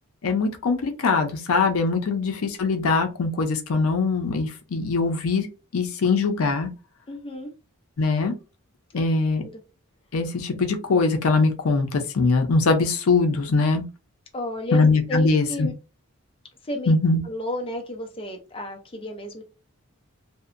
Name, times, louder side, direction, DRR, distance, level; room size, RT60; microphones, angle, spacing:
voice 1, 0.2-5.5 5.7-6.7 8.0-8.3 8.9-9.4 10.1-13.8 14.7-15.7 16.9-17.2, left 3 dB, 75° left, 0.5 m, -22 dB
voice 2, 7.1-7.5 8.9-9.0 9.4-9.5 14.3-15.7 16.6-16.9 17.2-19.4, equal, 25° left, 0.4 m, -32 dB
2.6 x 2.0 x 2.4 m
head